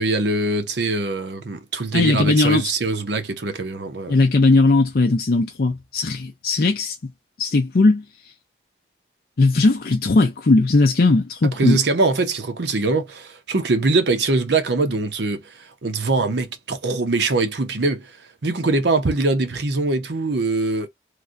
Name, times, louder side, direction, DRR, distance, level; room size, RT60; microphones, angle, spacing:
voice 1, 0.0-4.1 11.6-18.2 18.4-20.9, right 3 dB, 70° right, 0.8 m, -22 dB
voice 2, 1.9-2.7 4.1-7.0 7.4-8.3 9.4-11.8, left 3 dB, 50° left, 0.5 m, -18 dB
3.2 x 2.6 x 2.5 m
head